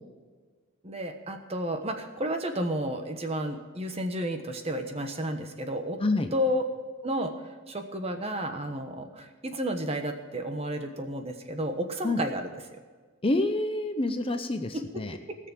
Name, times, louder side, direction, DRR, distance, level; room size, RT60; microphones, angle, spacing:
voice 1, 0.8-6.0 6.3-6.7 7.0-12.8 14.7-14.8 15.3-15.4, equal, 30° right, 6 dB, 1.1 m, -32 dB
voice 2, 13.2-15.1, left 2 dB, 25° left, 7 dB, 0.7 m, -27 dB
17.5 x 6.7 x 7.5 m, 1.4 s
head